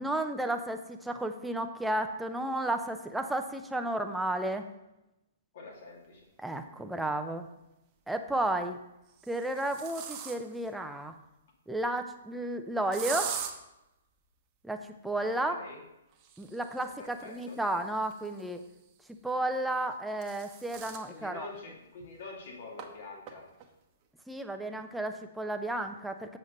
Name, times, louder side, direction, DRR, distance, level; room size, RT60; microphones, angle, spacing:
voice 1, 0.0-4.7 6.4-7.5 8.1-8.8 9.3-11.1 11.7-13.3 14.6-15.6 16.4-18.6 19.2-21.5 24.3-26.4, right 1 dB, 5° right, 6 dB, 0.6 m, -32 dB
voice 2, 5.5-6.3 15.2-15.8 16.8-17.6 21.1-23.5, left 3 dB, 60° left, -1 dB, 2.6 m, -46 dB
Aerosol can is nearly empty, 6.5-6.6 8.1-8.5 9.1-10.7 12.9-13.5 16.1-18.7 19.8-21.1 21.6-21.7 22.0-22.1 22.8-22.9 23.3-23.7, right 8 dB, 30° right, 1.0 m, -41 dB
7.5 x 7.3 x 3.9 m, 0.92 s
hypercardioid pair, 140°, 0 cm